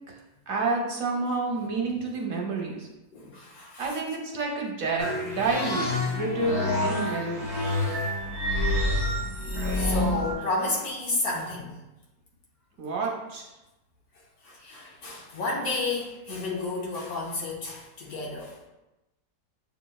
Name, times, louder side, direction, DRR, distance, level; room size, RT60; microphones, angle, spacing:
voice 1, 0.5-2.9 3.8-7.6 12.8-13.5, right 3 dB, 65° right, 0 dB, 1.0 m, -29 dB
voice 2, 3.1-4.0 7.9-8.0 9.7-11.7 14.4-18.6, left 3 dB, 70° left, -3 dB, 1.3 m, -31 dB
sound 1, 5.0-10.3, left 1 dB, 55° left, 1.8 m, -28 dB
7.5 x 3.0 x 2.3 m, 0.99 s
omnidirectional pair, 1.7 m